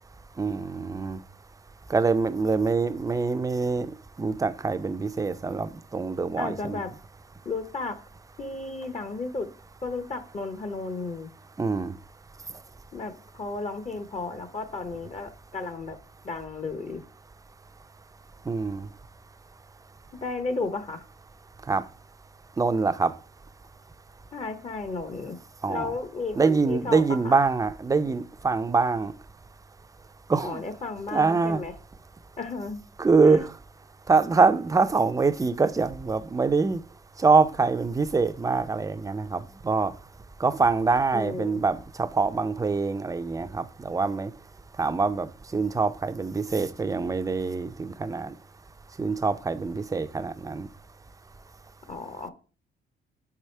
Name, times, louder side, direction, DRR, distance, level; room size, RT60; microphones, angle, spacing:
voice 1, 0.4-1.2 1.9-6.8 11.6-11.9 18.5-18.9 21.7-21.8 22.6-23.1 25.6-25.9 26.4-29.1 30.3-30.6 31.1-31.6 33.0-33.5 34.1-36.8 37.2-39.9 40.4-44.3 44.8-48.3 49.0-50.7, right 4 dB, 15° right, 0.5 m, -24 dB
voice 2, 6.4-6.9 7.4-8.0 8.4-9.5 9.8-11.3 12.9-16.0 16.2-17.0 20.2-21.0 24.3-25.4 25.7-27.3 30.4-31.7 32.4-32.8 33.2-33.4 41.1-41.6 51.9-52.3, left 3 dB, 35° left, 0.9 m, -33 dB
4.9 x 4.8 x 4.4 m
cardioid pair, 90°, 20 cm